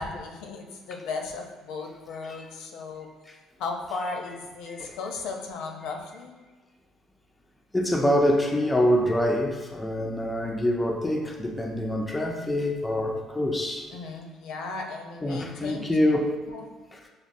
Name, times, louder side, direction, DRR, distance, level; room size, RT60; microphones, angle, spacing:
voice 1, 0.0-3.1 3.6-6.3 13.9-16.1 16.5-16.7, left 4 dB, 80° left, 2 dB, 0.6 m, -36 dB
voice 2, 7.7-13.9 15.2-16.4 16.9-17.0, equal, 10° left, 1 dB, 0.3 m, -25 dB
6.1 x 2.3 x 2.6 m, 1.3 s
cardioid pair, 155°, 0 cm